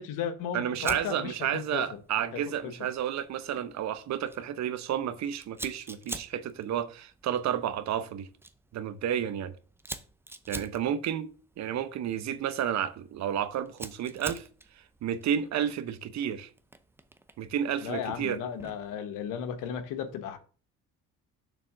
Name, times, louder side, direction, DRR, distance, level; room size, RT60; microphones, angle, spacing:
voice 1, 0.0-1.8 2.3-2.7 17.8-20.4, left 8 dB, 75° left, 1.3 m, -35 dB
voice 2, 0.5-8.3 8.7-9.5 10.5-11.3 11.6-14.5 15.0-16.5 17.4-18.4, right 9 dB, 60° right, 0.9 m, -31 dB
Fire, 0.8-19.0, right 2 dB, 5° right, 0.6 m, -47 dB
6.9 x 3.7 x 6.0 m
cardioid pair, 100°, 32 cm